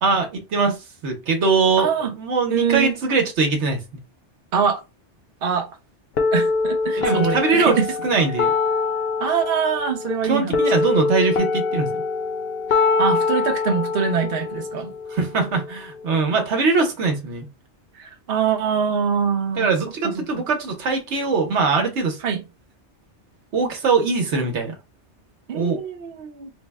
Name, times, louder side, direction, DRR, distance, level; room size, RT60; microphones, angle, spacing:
voice 1, 0.0-3.8 7.0-7.8 8.0-8.5 10.2-12.0 15.1-17.5 19.6-22.2 23.5-24.7 25.5-25.8, right 4 dB, 80° right, 1.1 m, -21 dB
voice 2, 1.8-2.1 2.5-3.0 4.5-4.8 5.4-5.7 6.3-7.8 9.2-10.6 12.7-14.9 17.9-19.7 20.3-20.4 22.2-22.4 25.5-26.5, right 6 dB, 60° right, 0.8 m, -23 dB
sound 1, 6.2-16.2, left 4 dB, 65° left, 0.8 m, -24 dB
3.5 x 2.1 x 3.4 m
omnidirectional pair, 1.2 m